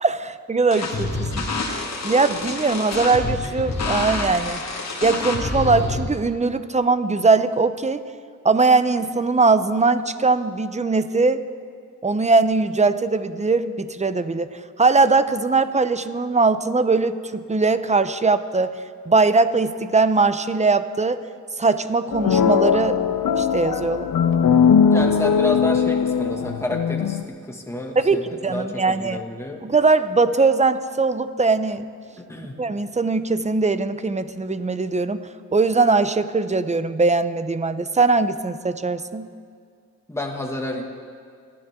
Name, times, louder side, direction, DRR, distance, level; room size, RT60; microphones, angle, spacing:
voice 1, 0.0-1.5 2.0-4.6 5.0-8.0 8.4-11.4 12.0-14.5 14.8-18.8 19.1-21.2 21.6-23.0 23.4-24.1 28.0-29.2 29.6-31.8 32.6-35.2 35.5-39.3, right 3 dB, 20° right, 12 dB, 0.7 m, -20 dB
sound 1, 0.7-6.0, left 3 dB, 55° left, 2.2 m, -27 dB
sound 2, 22.1-27.2, left 7 dB, 80° left, 0.8 m, -19 dB
voice 2, 24.9-29.6 32.3-32.5 40.1-40.8, left 1 dB, 10° left, 0 dB, 2.1 m, -29 dB
30.0 x 11.0 x 3.8 m, 2.2 s
cardioid pair, 75°, 33 cm